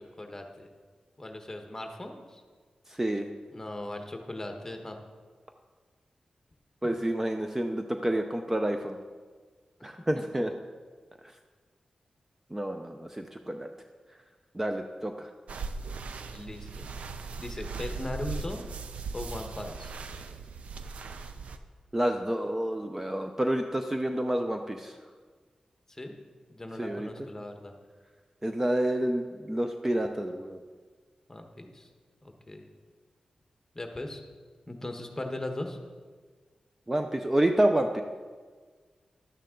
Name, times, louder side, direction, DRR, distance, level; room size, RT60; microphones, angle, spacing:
voice 1, 0.2-0.7 1.2-2.4 3.5-5.0 10.1-10.2 16.3-16.9 17.4-18.7 19.1-19.9 25.9-26.1 26.5-27.7 31.3-31.9 32.2-32.7 33.7-34.2 34.7-35.8, left 1 dB, 20° left, 4 dB, 1.3 m, -38 dB
voice 2, 2.9-3.3 6.8-9.0 9.8-10.5 12.5-13.7 14.5-15.3 21.9-25.0 26.8-27.3 28.4-30.6 36.9-38.0, right 1 dB, 15° right, 5 dB, 0.6 m, -29 dB
sound 1, 15.5-21.6, right 4 dB, 90° right, 0.6 m, -38 dB
12.0 x 9.0 x 3.8 m, 1.5 s
wide cardioid pair, 80°, 2 cm